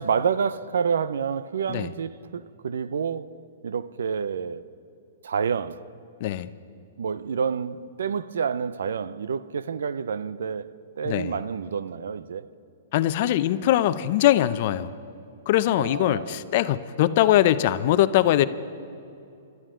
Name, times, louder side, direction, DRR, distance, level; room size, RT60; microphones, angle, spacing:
voice 1, 0.0-3.3 3.6-4.6 5.2-5.9 7.0-12.5 15.8-16.4, right 6 dB, 80° right, 0.5 m, -28 dB
voice 2, 11.1-11.4 12.9-14.9 15.5-18.5, left 13 dB, 50° left, 0.6 m, -21 dB
29.0 x 13.0 x 3.8 m
hypercardioid pair, 130°, 0 cm